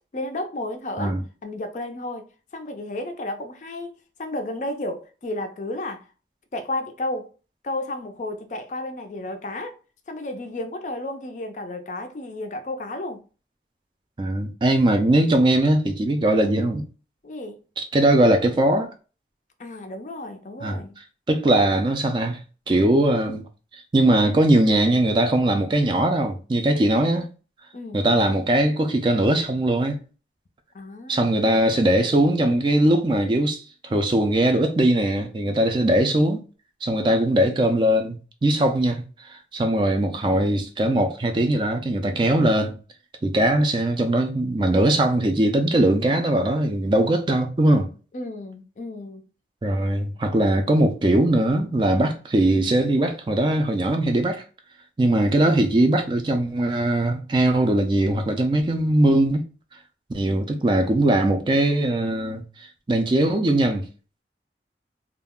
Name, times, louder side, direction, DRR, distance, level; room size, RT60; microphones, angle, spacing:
voice 1, 0.1-6.1 6.5-7.3 7.6-9.8 10.1-13.2 17.2-17.6 19.6-20.9 27.7-28.1 30.7-31.6 48.1-49.2, left 1 dB, 45° left, 0.4 m, -33 dB
voice 2, 14.2-16.9 17.8-18.9 20.6-20.8 21.3-22.4 22.7-23.4 23.7-27.3 27.9-30.0 31.1-33.6 33.9-36.4 36.8-38.2 38.4-39.0 39.3-42.8 43.2-47.9 49.6-54.4 55.0-59.5 60.1-63.9, right 1 dB, 25° right, 0.3 m, -20 dB
2.3 x 2.0 x 3.5 m
head